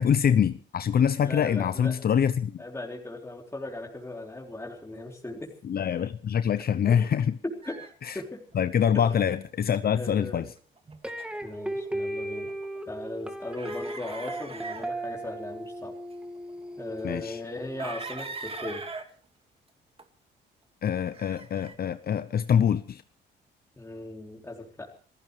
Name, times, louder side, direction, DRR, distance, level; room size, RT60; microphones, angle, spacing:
voice 1, 0.0-2.6 5.6-7.3 8.0-8.2 8.5-10.5 17.0-17.4 20.8-23.0, left 8 dB, 50° left, 13 dB, 0.8 m, -25 dB
voice 2, 1.2-1.9 2.6-5.5 6.9-7.0 7.4-8.4 8.9-9.1 9.9-10.4 11.4-12.5 12.9-15.9 16.8-18.8 23.8-24.9, left 2 dB, 15° left, -1 dB, 3.7 m, -38 dB
sound 1, 7.6-7.9 8.4-9.0 10.4-11.6 11.8-12.8 13.5-14.9 16.0-16.5 17.8-19.1 20.0-20.1 21.1-21.7, right 4 dB, 30° right, 2.3 m, -40 dB
sound 2, 11.0-18.1, right 1 dB, 5° right, 2.5 m, -36 dB
28.0 x 15.0 x 3.4 m, 0.41 s
cardioid pair, 90°, 20 cm